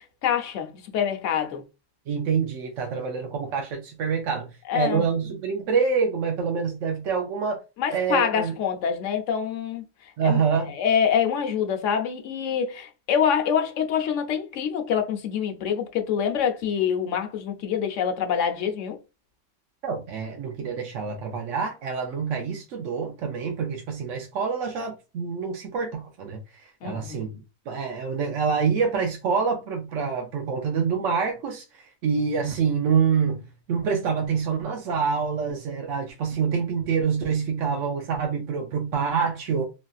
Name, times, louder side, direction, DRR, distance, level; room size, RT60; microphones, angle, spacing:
voice 1, 0.0-1.6 4.7-5.1 7.8-9.8 10.2-10.4 10.7-19.0 26.8-27.2, left 8 dB, 85° left, 1.0 m, -25 dB
voice 2, 2.1-4.5 4.7-7.6 7.9-8.5 10.2-10.7 19.8-27.3 27.7-33.4 33.7-39.6, right 6 dB, 90° right, 1.0 m, -26 dB
3.2 x 2.5 x 2.3 m
omnidirectional pair, 1.3 m